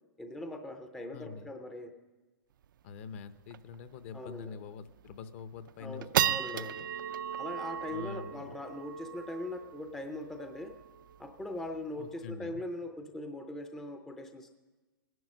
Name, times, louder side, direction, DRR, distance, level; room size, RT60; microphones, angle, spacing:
voice 1, 0.2-2.0 4.1-4.6 5.8-6.8 7.4-10.8 11.2-14.5, left 1 dB, 5° left, 6 dB, 0.5 m, -41 dB
voice 2, 1.1-1.5 2.8-6.9 7.9-8.6 12.0-12.7, left 5 dB, 40° left, 12 dB, 0.7 m, -45 dB
sound 1, 2.6-2.7 3.0-3.1 3.5-3.7 4.2-4.3 4.9-5.2 5.7-12.3, right 10 dB, 70° right, 0.5 m, -36 dB
16.5 x 11.0 x 6.3 m, 1.3 s
hypercardioid pair, 160°, 11 cm